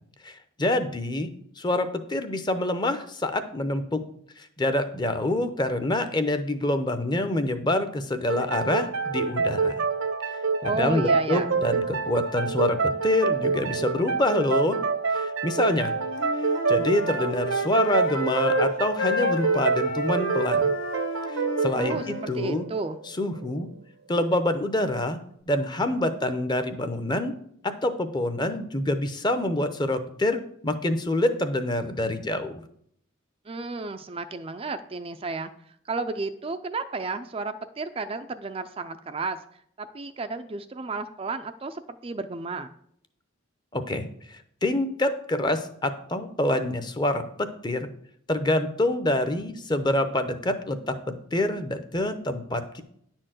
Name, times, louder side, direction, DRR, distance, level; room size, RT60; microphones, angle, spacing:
voice 1, 0.2-1.3 1.6-4.0 4.4-9.8 10.3-14.8 15.1-15.9 16.7-20.7 21.3-22.6 23.2-23.7 24.1-25.2 25.5-27.3 27.6-32.6 43.7-47.9 48.3-52.8, left 1 dB, 20° left, 10 dB, 0.7 m, -26 dB
sound 1, 8.3-23.6, right 4 dB, 70° right, 0.9 m, -27 dB
voice 2, 10.6-11.5 21.7-23.0 33.5-39.4 39.8-42.7, right 3 dB, 25° right, 8 dB, 0.4 m, -32 dB
Wind instrument woodwind instrument, 15.8-18.7 19.0-22.3, left 2 dB, 65° left, 1.2 m, -31 dB
10.5 x 4.5 x 7.6 m, 0.68 s
head